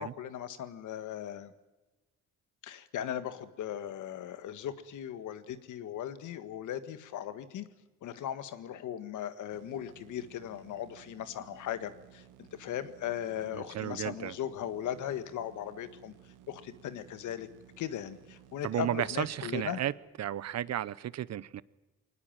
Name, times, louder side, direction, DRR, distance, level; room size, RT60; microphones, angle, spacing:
voice 1, 0.0-1.5 2.6-7.7 8.0-16.1 16.5-17.5 17.8-19.8, left 10 dB, 80° left, 11 dB, 1.6 m, -38 dB
sound 1, 9.5-19.9, right 12 dB, 85° right, 1.6 m, -57 dB
voice 2, 13.5-14.3 18.6-19.9 20.2-21.6, right 11 dB, 60° right, 19 dB, 0.8 m, -33 dB
22.5 x 19.0 x 9.1 m, 1.1 s
cardioid pair, 90°, 30 cm